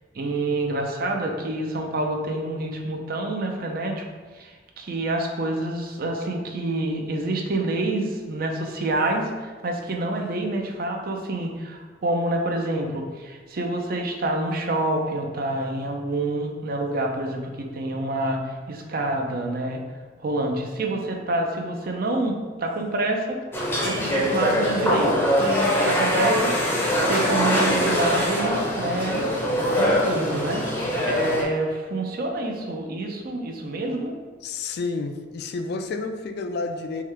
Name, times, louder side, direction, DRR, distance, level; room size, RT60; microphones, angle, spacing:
voice 1, 0.1-4.0 4.3-19.8 20.2-23.4 23.8-29.2 29.7-30.6 31.1-34.1, right 2 dB, 55° right, 2 dB, 0.5 m, -27 dB
sound 1, 23.5-31.4, equal, 10° left, 0.6 m, -23 dB
voice 2, 34.4-37.0, left 3 dB, 60° left, 7 dB, 0.3 m, -30 dB
3.7 x 3.1 x 3.3 m, 1.4 s
head